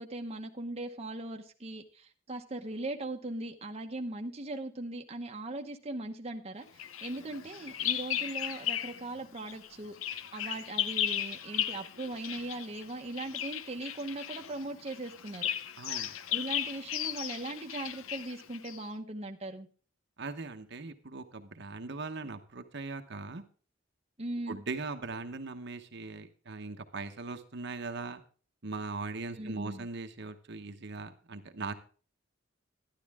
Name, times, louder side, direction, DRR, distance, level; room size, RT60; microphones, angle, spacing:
voice 1, 0.0-9.9 10.3-15.5 16.3-19.7 24.2-24.6 29.3-29.9, right 2 dB, 30° right, 3 dB, 0.9 m, -39 dB
Bird vocalization bird call bird song, 6.8-9.1 9.4-18.9, left 11 dB, 90° left, 0.7 m, -36 dB
voice 2, 15.8-16.1 20.2-23.4 24.5-28.2 28.6-31.7, right 3 dB, 60° right, 7 dB, 1.0 m, -40 dB
12.0 x 11.5 x 3.6 m, 0.40 s
head